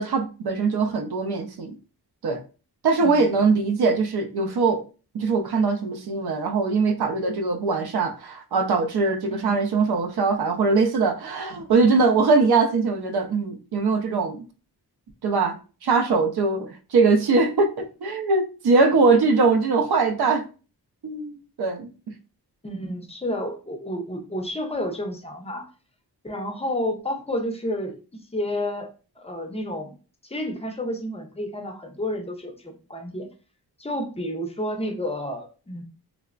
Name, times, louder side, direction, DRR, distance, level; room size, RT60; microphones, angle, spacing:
voice 1, 0.0-1.8 2.2-2.4 2.8-4.8 5.1-14.5 15.2-20.4 21.0-21.9, right 4 dB, 70° right, 0.6 m, -22 dB
voice 2, 3.0-3.3 9.3-9.6 22.6-25.7 26.2-28.9 29.2-29.9 30.2-33.3 33.8-35.8, left 1 dB, 15° left, 0.4 m, -30 dB
3.2 x 2.0 x 2.3 m
wide cardioid pair, 140°, 40 cm